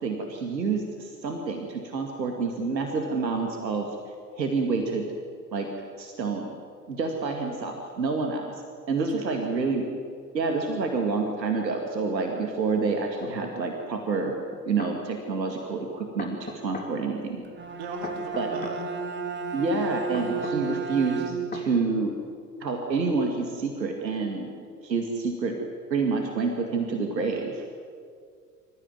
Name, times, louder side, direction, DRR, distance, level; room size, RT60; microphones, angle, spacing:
voice 1, 0.0-3.9 4.4-5.1 5.5-5.7 6.0-6.5 6.9-8.6 8.9-9.8 10.3-14.4 14.7-17.4 18.4-18.5 19.5-22.1 22.6-25.6 25.9-27.6, right 4 dB, 80° right, 3 dB, 2.3 m, -28 dB
voice 2, 9.0-9.6 17.8-18.8, right 5 dB, 55° right, 5 dB, 3.4 m, -39 dB
sound 1, 13.2-13.4 14.5-15.0 16.2-16.9 18.0-18.8 20.1-20.6 21.5-21.7, left 4 dB, 15° left, 3.6 m, -37 dB
Bowed string instrument, 17.4-21.7, right 4 dB, 20° right, 2.6 m, -33 dB
26.0 x 14.5 x 9.6 m, 2.2 s
figure-of-eight pair, 80°, 50 cm